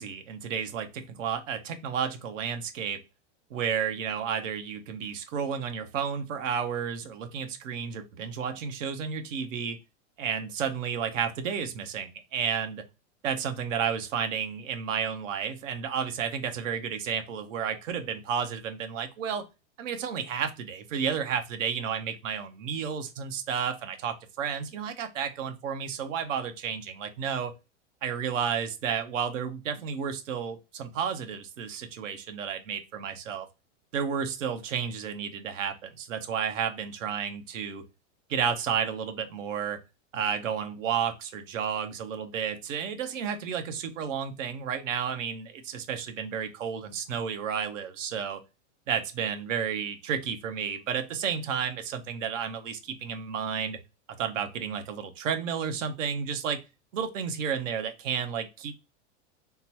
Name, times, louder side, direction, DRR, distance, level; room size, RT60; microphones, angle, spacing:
voice 1, 0.0-3.0 3.5-9.8 10.2-12.8 13.2-19.5 19.8-27.5 28.0-33.5 33.9-37.8 38.3-39.8 40.1-48.4 48.9-53.8 54.2-56.6 56.9-58.7, right 7 dB, 85° right, 7 dB, 0.9 m, -32 dB
3.7 x 2.2 x 2.8 m, 0.26 s
supercardioid pair, 130°, 37 cm